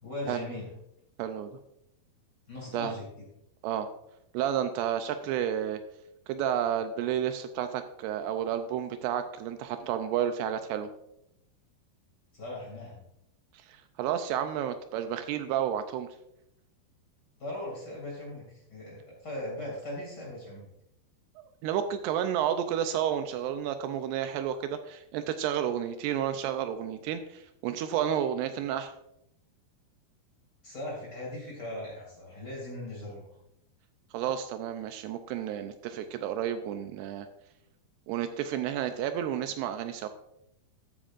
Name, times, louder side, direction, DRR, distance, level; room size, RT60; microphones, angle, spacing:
voice 1, 0.0-0.7 2.5-3.3 12.3-13.0 17.4-20.7 30.6-33.3, left 1 dB, 30° left, -3 dB, 2.9 m, -39 dB
voice 2, 1.2-1.5 2.7-2.9 3.6-3.9 4.3-5.8 6.3-10.9 13.5-16.1 21.4-28.9 34.1-37.3 38.1-40.1, right 9 dB, 80° right, 8 dB, 2.6 m, -31 dB
14.0 x 8.8 x 2.5 m, 0.80 s
omnidirectional pair, 4.9 m